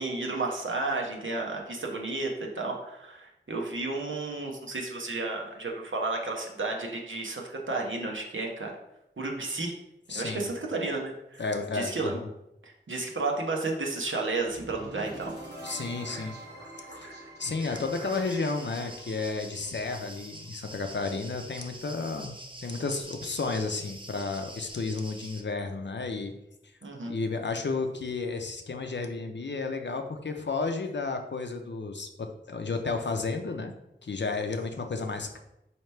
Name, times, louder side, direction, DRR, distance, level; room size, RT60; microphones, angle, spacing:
voice 1, 0.0-8.7 9.2-9.7 10.1-11.4 11.7-12.2 12.6-15.4 26.8-27.1, right 3 dB, 85° right, 0 dB, 0.7 m, -32 dB
voice 2, 10.1-10.5 11.4-12.3 15.6-16.3 17.0-17.1 17.4-22.4 22.6-26.3 27.0-33.7 34.0-35.4, left 3 dB, 65° left, 5 dB, 0.5 m, -32 dB
sound 1, 14.5-20.5, right 1 dB, 60° right, 0.9 m, -45 dB
sound 2, 17.6-25.4, right 1 dB, 25° right, 0.5 m, -46 dB
4.3 x 2.8 x 3.2 m, 0.85 s
wide cardioid pair, 45°, 20 cm